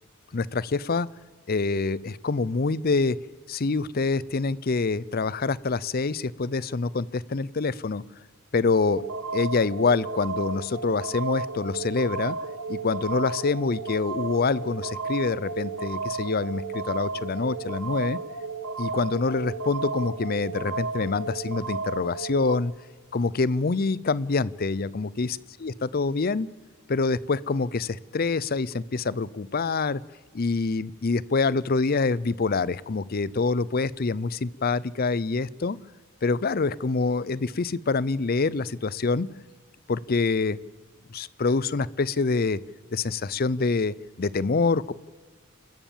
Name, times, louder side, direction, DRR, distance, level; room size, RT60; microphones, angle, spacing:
voice 1, 0.3-1.1 1.5-3.2 3.5-8.0 8.5-9.0 9.3-12.4 12.7-18.2 18.8-22.7 23.1-26.5 26.9-30.0 30.3-35.8 36.2-39.3 39.9-40.6 41.1-42.6 42.9-44.9, left 4 dB, 45° left, 21 dB, 0.5 m, -26 dB
sound 1, 8.9-22.6, right 4 dB, 80° right, 1.6 m, -33 dB
28.5 x 14.0 x 7.3 m, 1.5 s
head